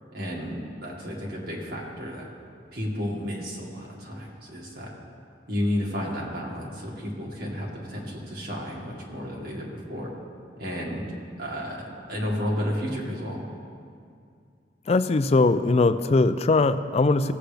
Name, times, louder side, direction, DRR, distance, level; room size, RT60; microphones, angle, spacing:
voice 1, 0.1-2.3 2.7-4.9 5.5-10.1 10.6-11.0 11.4-11.8 12.1-13.4, equal, 60° right, -3 dB, 1.9 m, -32 dB
voice 2, 14.9-17.3, left 3 dB, 35° left, 12 dB, 0.4 m, -21 dB
17.5 x 7.9 x 3.4 m, 2.3 s
head